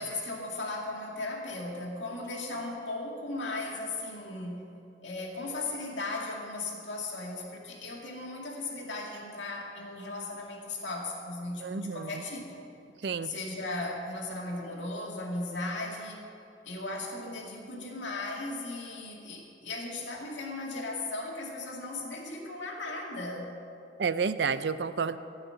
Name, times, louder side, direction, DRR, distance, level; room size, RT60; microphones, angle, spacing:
voice 1, 0.0-4.6 5.0-12.6 13.2-16.2 16.6-23.5, left 2 dB, 85° left, -1 dB, 2.2 m, -37 dB
voice 2, 11.6-12.2 13.0-13.3 24.0-25.2, right 5 dB, 65° right, 13 dB, 0.5 m, -30 dB
15.5 x 5.7 x 8.9 m, 2.7 s
head